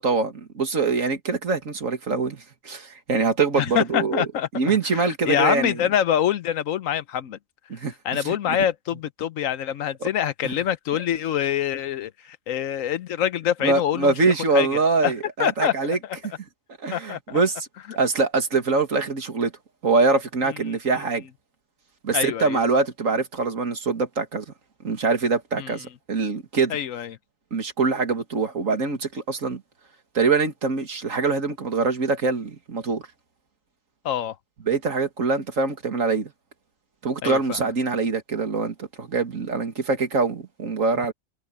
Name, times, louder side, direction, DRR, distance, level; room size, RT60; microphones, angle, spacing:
voice 1, 0.0-4.3 4.5-5.8 7.7-8.6 10.0-10.1 10.4-10.5 13.6-16.0 16.8-17.7 18.0-19.5 19.8-21.2 22.0-24.4 24.8-26.8 27.5-29.6 30.1-33.0 34.7-36.3 37.0-41.1, right 4 dB, 80° right, 2.5 m, -24 dB
voice 2, 3.6-7.4 8.0-14.1 14.5-14.7 15.0-15.1 15.4-15.7 16.9-17.4 20.5-20.8 22.1-22.6 25.6-25.7 26.7-27.2 34.0-34.4 37.2-37.6, left 10 dB, 85° left, 1.2 m, -25 dB
omnidirectional pair, 1.3 m